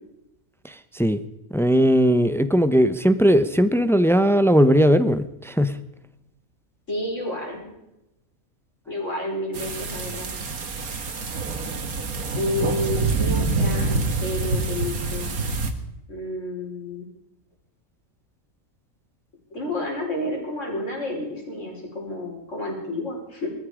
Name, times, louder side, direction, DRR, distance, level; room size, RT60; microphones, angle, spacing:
voice 1, 0.6-1.2 1.5-5.8, equal, 5° left, 11 dB, 0.4 m, -18 dB
voice 2, 6.9-7.7 8.9-10.3 12.4-15.4 16.1-17.1 19.5-23.5, left 1 dB, 60° left, -1 dB, 5.3 m, -30 dB
sound 1, 9.5-15.7, right 3 dB, 85° right, 2.1 m, -26 dB
21.0 x 14.0 x 5.0 m, 0.90 s
omnidirectional pair, 1.5 m